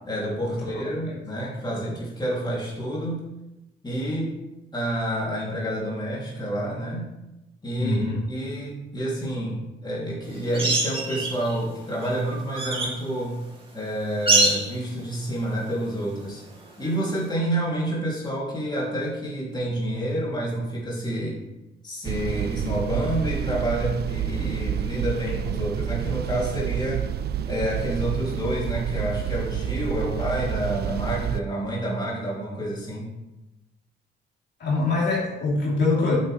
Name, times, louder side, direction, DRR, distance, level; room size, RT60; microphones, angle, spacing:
voice 1, 0.0-3.2 3.8-4.3 4.7-7.1 7.6-13.4 13.7-16.4 16.8-21.4 21.8-27.1 27.4-33.1, right 1 dB, 20° left, -5 dB, 2.9 m, -28 dB
voice 2, 7.8-8.2 34.6-36.1, left 3 dB, 60° left, -4 dB, 3.2 m, -24 dB
sound 1, 10.5-11.6 12.0-13.0 14.3-14.8 17.0-17.1, right 2 dB, 25° right, 2.5 m, -24 dB
sound 2, 22.0-31.4, right 9 dB, 55° right, 0.4 m, -29 dB
8.8 x 7.8 x 3.3 m, 0.96 s
cardioid pair, 90°, 20 cm